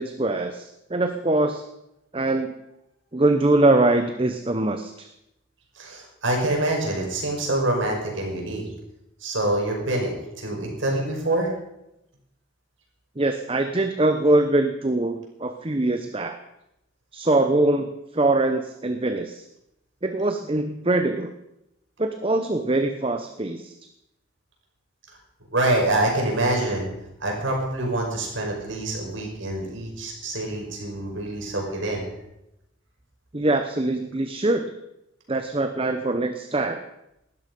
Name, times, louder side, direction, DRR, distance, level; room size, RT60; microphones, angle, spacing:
voice 1, 0.0-1.6 2.1-2.5 3.1-5.1 13.2-16.4 17.1-19.4 20.0-21.3 22.0-23.7 33.3-34.7 35.3-36.8, right 2 dB, 30° right, 7 dB, 0.9 m, -23 dB
voice 2, 5.8-8.6 9.2-10.1 10.4-11.5 25.1-25.2 25.5-26.9 27.2-32.1, right 1 dB, 80° right, 0 dB, 5.7 m, -25 dB
19.0 x 13.0 x 5.4 m, 0.87 s
head